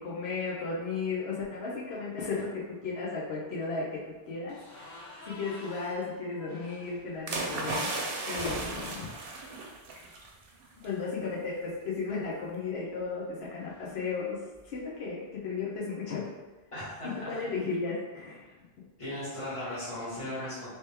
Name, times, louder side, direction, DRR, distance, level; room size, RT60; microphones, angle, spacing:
voice 1, 0.0-4.0 4.3-4.9 5.2-9.1 10.8-14.4 14.6-16.3 17.0-18.5, left 4 dB, 80° left, -6 dB, 1.0 m, -35 dB
sound 1, 4.5-10.5 10.8-11.0 11.3-11.4 12.6-15.0, left 1 dB, 45° left, 0.9 m, -46 dB
sound 2, 7.3-10.3 10.6-10.9, right 2 dB, 65° right, 0.7 m, -35 dB
voice 2, 16.7-17.4 19.0-20.7, left 1 dB, 30° left, -10 dB, 1.6 m, -37 dB
3.1 x 2.9 x 3.3 m, 1.2 s
omnidirectional pair, 1.0 m